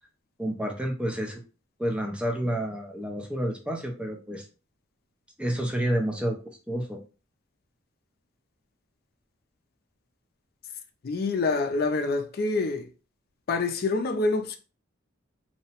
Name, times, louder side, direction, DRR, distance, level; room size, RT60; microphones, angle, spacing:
voice 1, 0.4-1.4 1.8-4.5 5.4-7.0, right 1 dB, 5° right, 0.4 m, -29 dB
voice 2, 11.0-12.9 13.5-14.6, left 3 dB, 50° left, 0.4 m, -26 dB
2.7 x 2.1 x 2.8 m
head